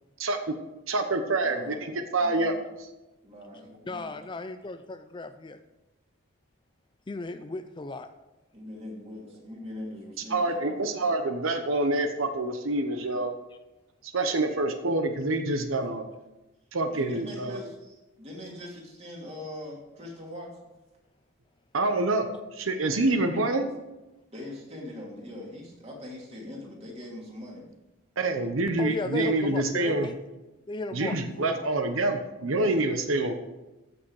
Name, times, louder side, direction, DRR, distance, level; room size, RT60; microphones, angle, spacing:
voice 1, 0.9-2.5 10.3-13.3 14.0-16.0 16.7-17.6 21.7-23.6 28.2-30.1 30.9-33.3, right 2 dB, 80° right, 7 dB, 1.0 m, -27 dB
voice 2, 1.4-1.8 2.2-2.7 3.2-4.2 8.5-10.8 16.9-20.7 22.9-23.4 24.3-27.6, left 1 dB, 30° right, -2 dB, 2.8 m, -41 dB
voice 3, 3.9-5.6 7.1-8.1 28.8-30.1 30.7-31.6, left 3 dB, 25° left, 9 dB, 0.4 m, -35 dB
14.5 x 6.2 x 4.9 m, 1.0 s
head